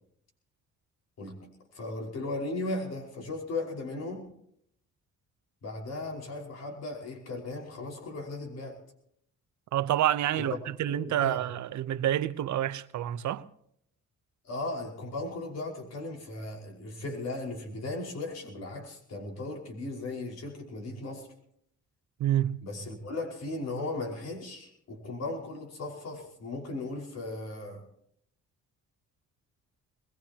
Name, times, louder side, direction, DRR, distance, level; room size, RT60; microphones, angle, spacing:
voice 1, 1.2-4.3 5.6-8.8 10.3-10.6 10.9-11.4 14.4-21.3 22.6-27.8, left 2 dB, 60° left, 5.4 m, -37 dB
voice 2, 9.7-13.4 22.2-22.6, right 12 dB, 70° right, 0.9 m, -28 dB
22.0 x 21.0 x 3.0 m
cardioid pair, 90°, 30 cm